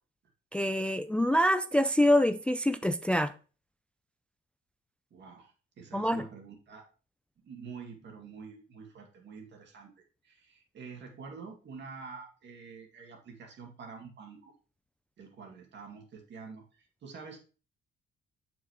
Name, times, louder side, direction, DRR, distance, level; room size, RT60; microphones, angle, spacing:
voice 1, 0.5-3.3 5.9-6.2, equal, 5° left, 0.3 m, -25 dB
voice 2, 5.1-6.9 7.4-14.5 15.2-17.4, right 5 dB, 65° right, 2.3 m, -47 dB
7.0 x 6.1 x 3.0 m
cardioid pair, 90°, 20 cm